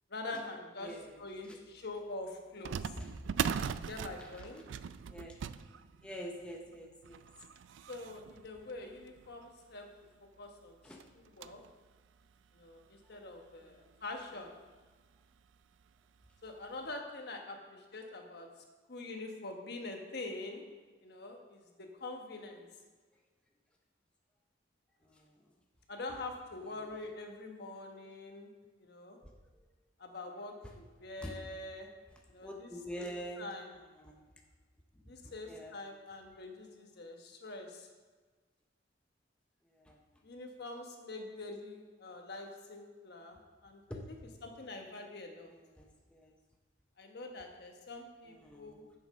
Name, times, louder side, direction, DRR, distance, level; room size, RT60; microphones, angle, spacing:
voice 1, 0.1-0.9 1.2-2.8 3.9-4.6 7.9-9.9 10.4-10.8 11.4-11.6 12.5-14.5 16.4-18.5 18.9-20.6 21.0-22.7 25.9-28.5 28.8-29.2 30.0-31.9 32.3-32.7 33.0-33.1 33.4-33.7 35.1-37.9 40.2-43.8 44.4-45.5 47.0-48.8, left 2 dB, 55° left, 3 dB, 1.2 m, -45 dB
voice 2, 0.8-1.6 3.0-3.1 4.2-4.3 4.6-4.7 5.1-5.4 6.0-7.2 10.8-11.0 13.6-13.9 17.7-17.8 25.0-25.4 26.7-27.1 29.2-29.3 30.6-30.8 31.2-31.4 32.1-34.2 34.9-36.1 39.6-40.0 43.9-44.1 45.5-46.3 48.3-48.9, equal, 5° left, 0 dB, 0.7 m, -47 dB
sound 1, 1.2-1.3 2.6-9.6 10.2-10.3 10.5-10.6 11.0-11.7 12.2-12.3 13.2-13.3 13.6-13.8 15.1-15.4 15.8-15.9 16.5-16.7, right 7 dB, 75° right, 0.3 m, -40 dB
7.6 x 6.9 x 5.3 m, 1.4 s
head